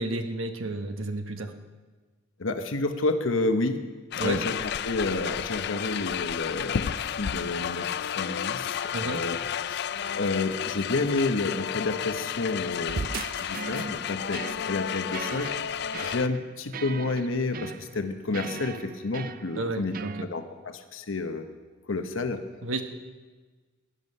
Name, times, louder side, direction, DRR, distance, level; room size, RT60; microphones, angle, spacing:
voice 1, 0.0-1.5 4.2-4.4 8.9-9.2 19.6-20.3 22.6-22.8, right 2 dB, 90° right, 6 dB, 1.1 m, -31 dB
voice 2, 2.4-3.9 4.2-9.4 9.7-9.9 10.1-15.5 16.0-21.5 21.9-22.4, left 3 dB, 80° left, 7 dB, 1.0 m, -30 dB
sound 1, 4.1-16.3, left 8 dB, 55° left, 0.4 m, -32 dB
sound 2, 12.9-20.3, right 5 dB, 45° right, 0.4 m, -39 dB
15.5 x 11.0 x 5.4 m, 1.3 s
head